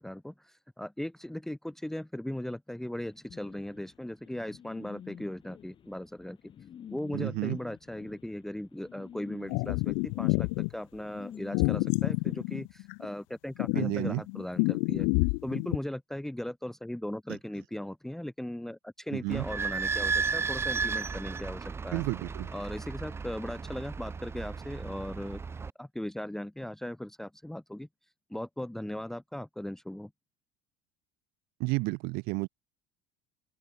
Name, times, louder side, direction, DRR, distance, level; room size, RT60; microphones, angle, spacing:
voice 1, 0.0-6.4 6.9-15.1 15.4-22.0 22.5-25.4 25.8-27.9 28.3-30.1, left 1 dB, ahead, 1.4 m, -38 dB
sound 1, 3.3-12.4, left 9 dB, 25° left, 5.0 m, -49 dB
voice 2, 7.1-7.6 13.7-14.2 19.1-19.5 21.9-22.5 31.6-32.5, right 27 dB, 60° right, 1.1 m, -31 dB
sound 2, 9.5-10.7 11.5-13.1 13.6-15.8, left 40 dB or more, 70° left, 1.1 m, -28 dB
Idling / Squeak, 19.3-25.7, right 5 dB, 15° right, 1.2 m, -34 dB
open air
cardioid pair, 170°, 18 cm